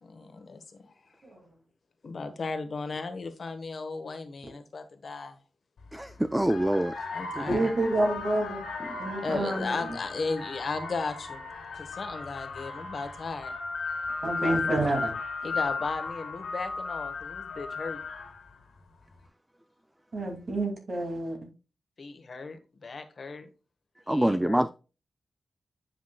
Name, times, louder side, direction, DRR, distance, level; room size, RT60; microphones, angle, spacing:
voice 1, 0.0-0.9 2.0-5.4 7.1-7.7 9.2-11.4 11.7-13.5 14.4-14.9 15.4-18.0 22.0-23.5 24.1-24.7, left 4 dB, 50° left, 1.3 m, -36 dB
sound 1, 5.8-6.0 6.4-18.5, left 4 dB, 85° left, 2.3 m, -36 dB
voice 2, 5.9-6.9 7.4-7.5 24.1-24.7, right 1 dB, 10° right, 0.3 m, -25 dB
voice 3, 7.5-8.6 9.0-9.8 14.2-15.1 20.1-21.4, right 2 dB, 50° right, 2.7 m, -28 dB
9.8 x 5.9 x 2.3 m
wide cardioid pair, 105°, 0 cm